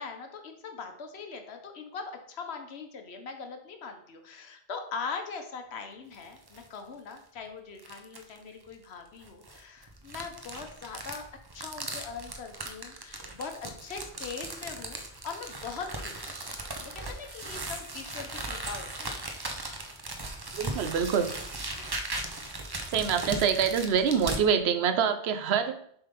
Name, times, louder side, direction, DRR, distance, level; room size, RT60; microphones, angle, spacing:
voice 1, 0.0-11.3 11.5-16.3 16.8-19.2 21.1-21.3 21.7-21.9, left 5 dB, 85° left, 5 dB, 1.2 m, -41 dB
sound 1, 6.1-6.7 7.1-7.2 7.8-8.4 9.2-24.4, right 2 dB, 25° right, 0.6 m, -38 dB
voice 2, 20.6-21.3 22.9-25.8, right 7 dB, 80° right, 10 dB, 0.9 m, -25 dB
6.9 x 3.7 x 5.3 m, 0.67 s
omnidirectional pair, 1.1 m